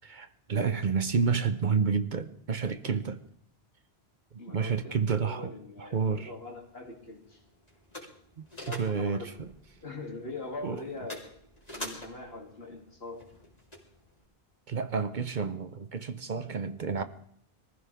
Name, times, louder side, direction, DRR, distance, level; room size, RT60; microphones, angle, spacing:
voice 1, 0.0-3.2 4.5-5.5 5.8-6.3 8.7-9.5 10.6-10.8 14.7-17.0, right 5 dB, 50° right, 0.8 m, -30 dB
voice 2, 4.4-7.4 8.6-9.4 9.8-11.3 11.7-13.3, left 2 dB, 70° left, 2.9 m, -42 dB
sound 1, 6.2-14.2, left 1 dB, 40° left, 3.6 m, -47 dB
23.0 x 15.0 x 3.5 m
omnidirectional pair, 1.0 m